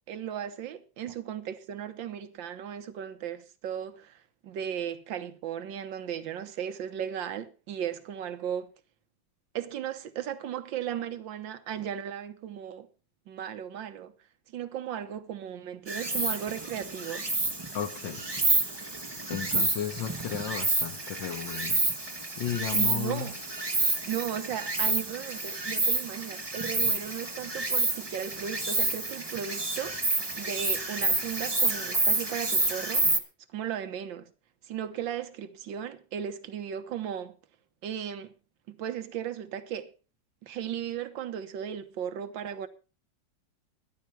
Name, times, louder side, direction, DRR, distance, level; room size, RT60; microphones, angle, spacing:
voice 1, 0.1-8.7 9.6-12.9 13.3-14.1 14.5-17.3 22.7-23.4 24.1-30.1 30.4-33.1 33.5-34.3 34.7-37.4 37.8-38.3 38.7-39.9 40.4-42.7, right 9 dB, 75° right, 1.8 m, -36 dB
Insect, 15.9-33.2, right 2 dB, 15° right, 1.0 m, -29 dB
voice 2, 17.7-18.2 19.3-21.8 22.4-23.3, left 9 dB, 75° left, 2.0 m, -34 dB
14.0 x 11.0 x 4.5 m
omnidirectional pair, 2.1 m